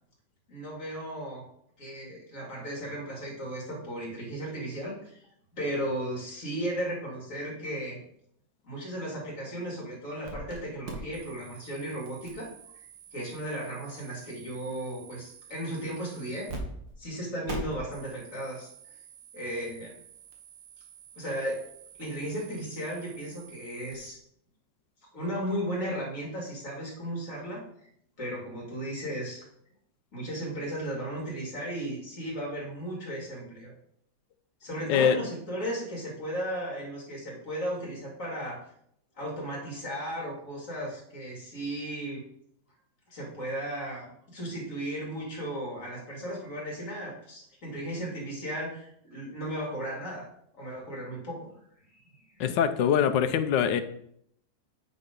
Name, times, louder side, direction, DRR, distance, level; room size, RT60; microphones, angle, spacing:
voice 1, 0.5-1.4 1.8-5.2 5.5-8.0 8.6-12.5 13.1-16.5 17.0-18.7 19.3-19.9 21.1-21.6 22.0-24.2 25.1-27.9 28.2-29.4 30.1-33.7 34.6-38.6 39.1-42.2 43.1-50.3 50.5-51.5, equal, 45° left, -3 dB, 3.0 m, -35 dB
sound 1, 10.2-10.6 10.8-16.6 16.8-17.0 17.5-24.1, right 3 dB, 80° right, 2.1 m, -46 dB
voice 2, 52.4-53.8, left 8 dB, 75° left, 10 dB, 1.3 m, -23 dB
8.9 x 4.2 x 5.2 m, 0.70 s
omnidirectional pair, 2.0 m